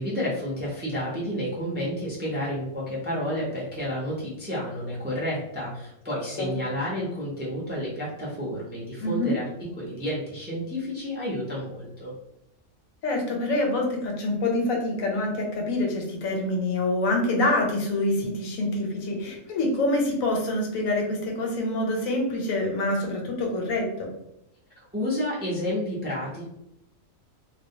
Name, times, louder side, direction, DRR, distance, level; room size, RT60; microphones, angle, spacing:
voice 1, 0.0-9.4 9.8-12.1 24.8-26.4, equal, 15° right, -5 dB, 0.3 m, -30 dB
voice 2, 9.0-9.3 13.0-24.1, left 2 dB, 90° left, 0 dB, 1.1 m, -26 dB
2.3 x 2.1 x 2.6 m, 0.81 s
omnidirectional pair, 1.4 m